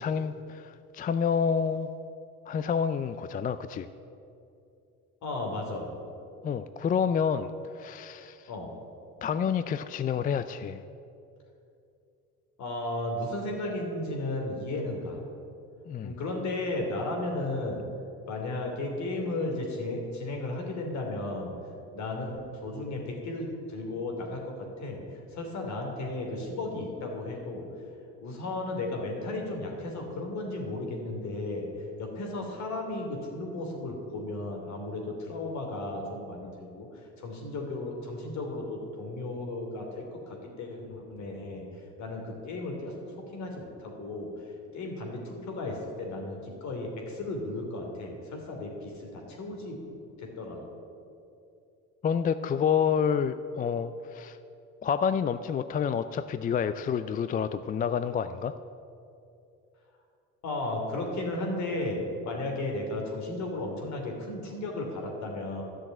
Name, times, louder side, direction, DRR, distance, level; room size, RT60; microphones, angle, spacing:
voice 1, 0.0-1.9 2.5-3.9 6.4-7.5 7.7-8.5 9.2-10.8 15.9-16.1 52.0-54.4 54.8-58.6, left 7 dB, 30° left, 12 dB, 0.4 m, -28 dB
voice 2, 5.2-5.9 8.5-8.7 12.6-15.2 16.0-17.8 18.3-21.5 21.9-27.6 28.2-31.7 32.0-41.6 42.0-43.0 43.3-44.3 44.7-49.8 50.2-50.6 60.4-65.6, left 2 dB, 65° left, 1 dB, 2.9 m, -34 dB
12.0 x 6.3 x 8.9 m, 2.6 s
cardioid pair, 105°, 30 cm